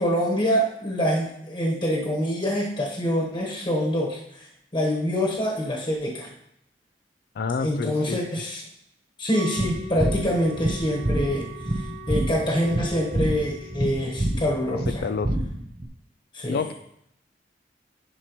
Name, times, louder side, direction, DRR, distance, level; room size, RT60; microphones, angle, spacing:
voice 1, 0.0-4.5 4.7-6.3 7.6-8.6 9.2-15.0 16.3-16.6, equal, 25° left, -2 dB, 1.2 m, -25 dB
voice 2, 7.4-8.2 14.7-15.3 16.5-16.7, left 5 dB, 60° left, 10 dB, 0.3 m, -28 dB
Wind instrument woodwind instrument, 9.3-15.1, equal, 75° right, 2.9 m, -43 dB
sound 1, 9.6-15.9, right 1 dB, 20° right, 0.5 m, -27 dB
10.5 x 4.4 x 3.0 m, 0.76 s
head